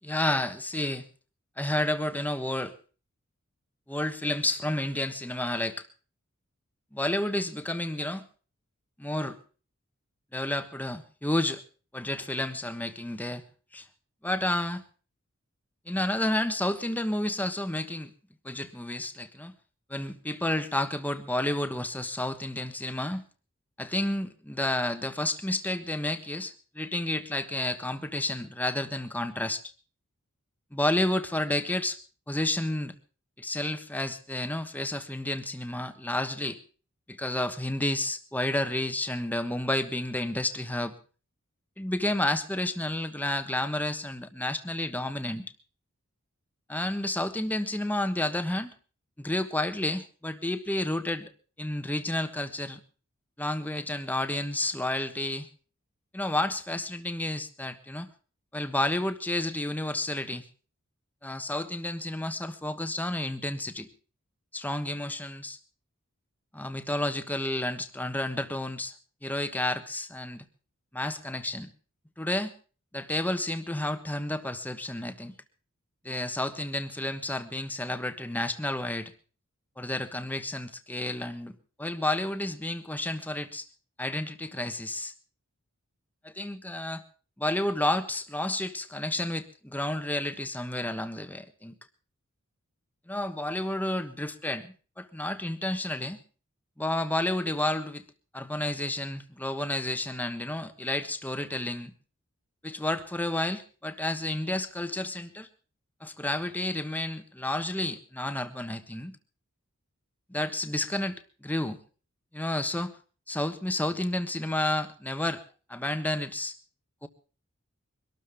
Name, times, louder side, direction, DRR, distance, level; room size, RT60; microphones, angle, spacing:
voice 1, 0.0-1.0 1.6-2.7 3.9-5.9 6.9-8.2 9.0-9.4 10.3-11.6 11.9-13.4 13.7-13.9 14.2-14.8 15.9-18.1 18.4-19.5 19.9-23.2 23.8-29.6 30.7-32.0 32.3-32.9 33.4-36.6 37.1-40.9 41.8-45.5 46.7-48.7 49.2-51.3 51.6-52.8 53.4-55.5 56.1-58.1 58.5-60.5 61.2-63.9 64.5-65.6 66.5-68.9 69.2-70.4 70.9-71.7 72.2-72.5 72.9-75.3 76.0-79.1 79.8-83.7 84.0-85.1 86.2-87.0 87.4-91.7 93.1-96.2 96.8-98.0 98.3-101.9 102.6-105.5 106.0-109.2 110.3-111.8 112.3-112.9 113.3-115.4 115.7-116.5 117.0-117.1, left 1 dB, 10° left, 9 dB, 1.3 m, -31 dB
23.5 x 13.0 x 3.6 m, 0.37 s
head